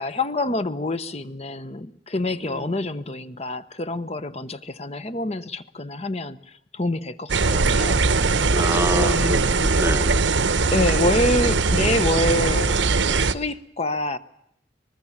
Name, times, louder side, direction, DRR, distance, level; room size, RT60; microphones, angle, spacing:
voice 1, 0.0-8.0 8.9-9.4 10.7-14.2, left 1 dB, 35° left, 13 dB, 1.0 m, -27 dB
voice 2, 2.4-2.8 8.5-10.2, right 1 dB, 15° right, 12 dB, 1.0 m, -27 dB
sound 1, 7.3-13.3, right 4 dB, 75° right, 0.9 m, -20 dB
25.0 x 21.0 x 7.3 m, 0.73 s
head